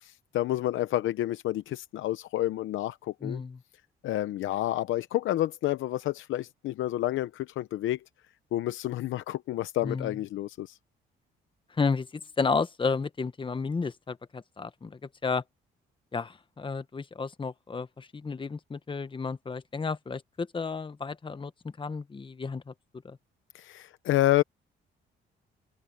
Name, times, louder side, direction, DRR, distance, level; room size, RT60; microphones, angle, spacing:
voice 1, 0.3-3.4 4.0-8.0 8.5-10.7 23.5-24.4, left 14 dB, 80° left, 0.8 m, -29 dB
voice 2, 3.2-3.6 9.8-10.2 11.8-12.1 12.4-15.4 16.1-21.5 21.8-22.7 23.0-23.2, left 4 dB, 25° left, 1.1 m, -32 dB
cardioid pair, 90°, 20 cm